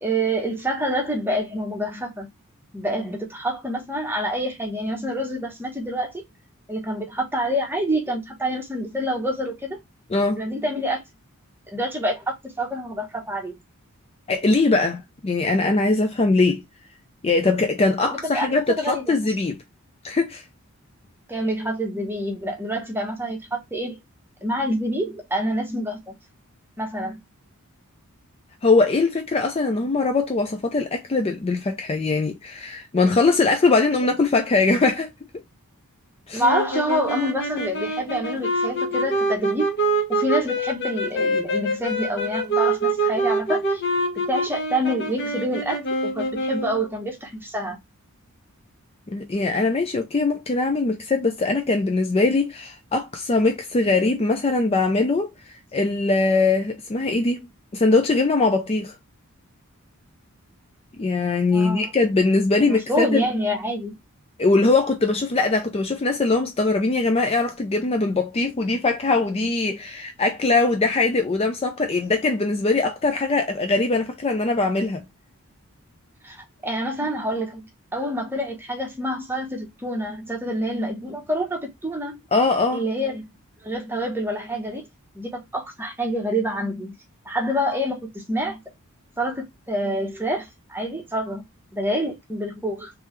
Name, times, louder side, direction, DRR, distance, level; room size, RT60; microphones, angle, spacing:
voice 1, 0.0-2.3 2.7-6.1 6.7-9.8 10.3-11.0 11.7-13.6 18.0-19.3 21.3-24.0 24.4-26.1 26.8-27.2 36.3-39.7 40.1-43.8 44.3-47.8 61.5-61.9 62.7-64.0 76.2-82.2 82.7-83.3 83.6-84.8 85.1-86.9 87.2-88.6 89.2-91.4 91.7-92.9, equal, 10° right, 1.0 m, -27 dB
voice 2, 10.1-10.4 14.3-16.6 17.2-19.6 20.0-20.4 28.6-35.1 36.3-36.4 49.1-55.3 55.7-57.5 57.7-58.9 61.0-63.2 64.4-75.0 82.3-82.8, left 3 dB, 25° left, 0.4 m, -21 dB
sound 1, 36.4-46.9, right 1 dB, 50° left, 1.4 m, -25 dB
3.4 x 3.3 x 3.2 m
head